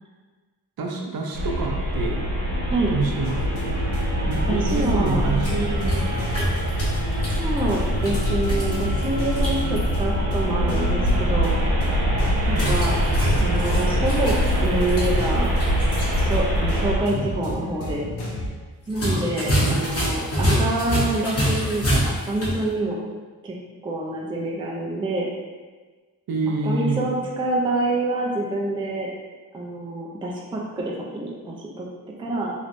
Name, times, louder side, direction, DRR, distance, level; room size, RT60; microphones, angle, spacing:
voice 1, 0.8-2.2 2.9-3.7 4.3-6.4 6.9-7.3 12.5-12.8 17.1-17.3 19.6-19.8 26.3-27.1, right 3 dB, 60° right, 1 dB, 0.6 m, -28 dB
sound 1, 1.3-17.0, equal, 80° right, 1.0 m, -24 dB
sound 2, 3.2-18.5, left 1 dB, 80° left, 0.7 m, -31 dB
voice 2, 4.5-5.3 7.4-11.0 11.3-11.6 12.5-13.0 13.4-14.4 14.6-15.5 16.2-18.1 18.9-23.0 23.4-23.5 23.8-25.3 26.6-29.1 29.5-31.9 32.2-32.5, right 2 dB, 15° right, -3 dB, 0.4 m, -26 dB
sound 3, 5.2-9.9 12.5-16.2 16.5-16.6 18.9-22.6, equal, 35° left, 1.1 m, -27 dB
3.3 x 3.1 x 2.5 m, 1.4 s
wide cardioid pair, 120°, 40 cm